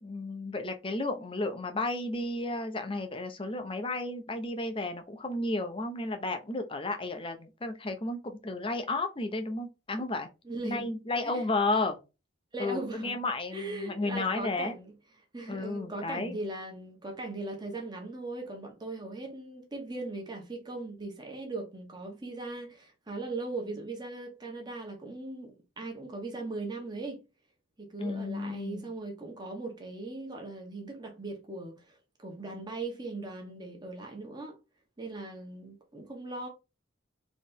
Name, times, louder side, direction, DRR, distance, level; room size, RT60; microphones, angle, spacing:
voice 1, 0.0-10.3 10.6-12.0 12.6-14.8 15.5-16.4 28.0-28.9, left 2 dB, 25° left, 0.8 m, -33 dB
voice 2, 10.4-10.9 11.2-11.5 12.5-13.2 13.5-14.9 15.3-27.2 27.8-34.5 35.0-36.5, right 2 dB, 20° right, 1.3 m, -39 dB
4.2 x 3.3 x 3.6 m
head